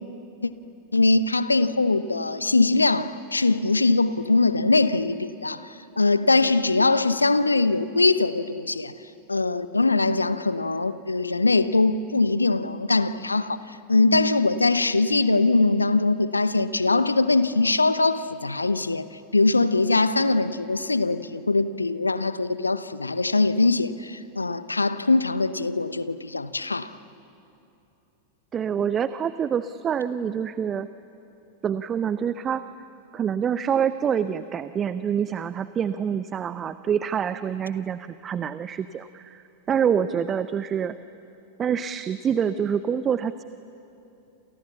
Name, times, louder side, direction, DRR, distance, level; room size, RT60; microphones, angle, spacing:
voice 1, 0.9-8.9 9.3-19.1 19.3-26.9, left 3 dB, 80° left, 14 dB, 0.9 m, -22 dB
voice 2, 28.5-30.9 31.6-32.6 33.1-40.9 41.6-43.4, right 8 dB, 25° right, 13 dB, 0.7 m, -26 dB
28.5 x 28.0 x 7.1 m, 2.8 s
figure-of-eight pair, 90°, 0 cm